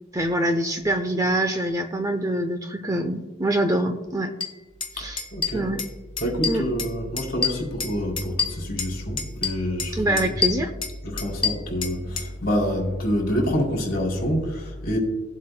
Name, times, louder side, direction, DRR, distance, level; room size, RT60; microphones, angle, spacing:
voice 1, 0.1-4.3 5.0-5.2 5.5-5.8 6.5-6.6 9.9-10.7, right 1 dB, 15° right, 6 dB, 0.5 m, -24 dB
sound 1, 4.4-4.5 4.8-4.9 5.2-5.9 6.2-6.9 7.2-8.9 9.2-9.9 10.2-12.3, left 5 dB, 25° left, 0.9 m, -27 dB
voice 2, 5.0-5.7 6.2-10.3 11.0-15.0, equal, 45° left, 0 dB, 3.2 m, -27 dB
18.0 x 7.6 x 2.2 m, 1.1 s
head